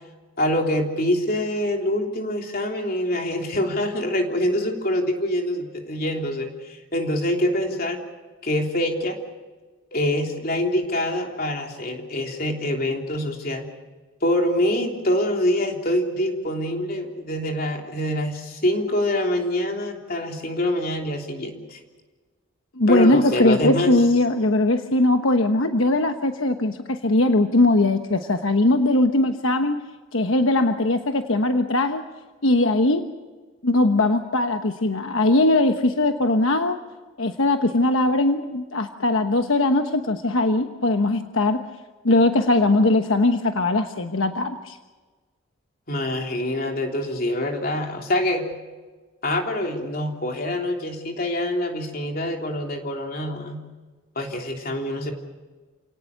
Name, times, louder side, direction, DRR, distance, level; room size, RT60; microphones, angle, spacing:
voice 1, 0.4-8.0 8.4-9.2 9.9-13.7 14.2-21.8 22.9-24.0 45.9-48.5 49.2-53.6 54.1-55.1, left 1 dB, 45° left, 2 dB, 3.3 m, -25 dB
voice 2, 22.8-29.8 30.1-32.0 32.4-33.1 33.6-36.8 37.2-41.6 42.0-44.8, left 2 dB, 80° left, 6 dB, 1.2 m, -20 dB
29.0 x 18.0 x 6.7 m, 1.3 s
head